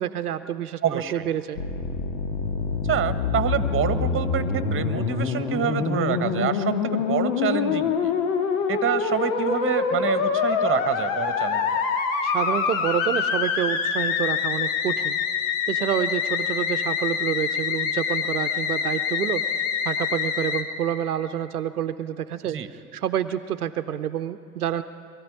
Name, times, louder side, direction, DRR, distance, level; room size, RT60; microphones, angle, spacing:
voice 1, 0.0-1.6 12.2-15.2 15.7-19.4 19.8-24.8, right 10 dB, 85° right, 10 dB, 0.7 m, -28 dB
voice 2, 0.8-1.2 2.8-8.1 8.7-11.8 22.5-22.7, right 9 dB, 30° right, 11 dB, 1.4 m, -27 dB
Musical instrument, 1.6-20.6, left 6 dB, 60° left, 1.8 m, -25 dB
22.5 x 13.5 x 9.6 m, 2.4 s
figure-of-eight pair, 75°, 44 cm